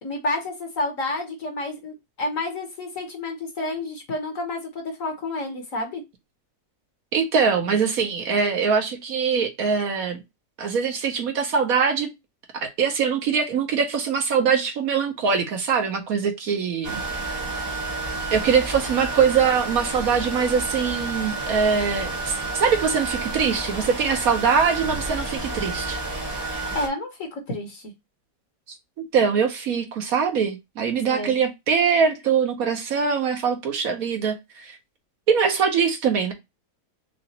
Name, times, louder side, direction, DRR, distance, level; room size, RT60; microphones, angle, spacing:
voice 1, 0.0-6.0 26.7-27.9 31.1-31.3, left 2 dB, 55° left, 1.4 m, -30 dB
voice 2, 7.1-10.2 10.6-12.1 12.6-17.0 17.3-17.4 18.3-26.0 29.0-34.8 35.3-36.3, right 6 dB, 65° right, 1.2 m, -23 dB
sound 1, 16.8-26.9, right 3 dB, 15° right, 0.9 m, -30 dB
5.8 x 2.4 x 2.8 m
omnidirectional pair, 1.8 m